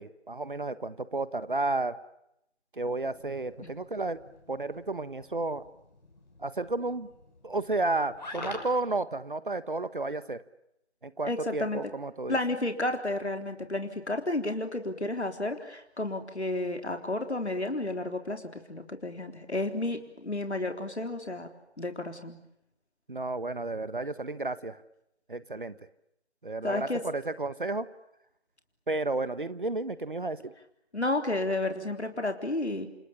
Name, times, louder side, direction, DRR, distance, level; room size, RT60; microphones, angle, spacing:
voice 1, 0.0-2.0 2.7-4.2 4.5-5.7 6.4-7.1 7.4-10.4 11.0-12.4 23.1-24.8 25.3-25.7 26.4-27.9 28.9-30.5, right 2 dB, 50° right, 15 dB, 1.3 m, -32 dB
sound 1, 2.8-8.8, left 2 dB, 40° left, 6.3 m, -47 dB
voice 2, 11.2-11.8 12.3-21.5 21.8-22.4 26.6-27.0 30.9-32.9, left 2 dB, 80° left, 5 dB, 3.8 m, -32 dB
29.0 x 27.5 x 7.2 m, 0.81 s
figure-of-eight pair, 165°, 33 cm